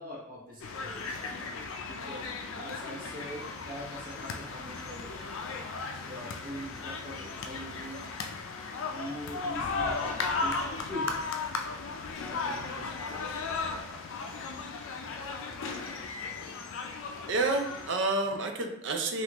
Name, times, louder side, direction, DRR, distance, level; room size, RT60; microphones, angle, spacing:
voice 1, 0.0-1.5 1.9-5.4 6.0-8.0 8.9-10.6 10.9-11.2 12.2-13.4, equal, 45° right, -5 dB, 1.0 m, -43 dB
sound 1, 0.6-17.9, left 4 dB, 90° left, 0.4 m, -36 dB
voice 2, 17.3-19.2, right 2 dB, 65° right, 3 dB, 0.5 m, -29 dB
3.5 x 2.5 x 2.9 m, 0.82 s
head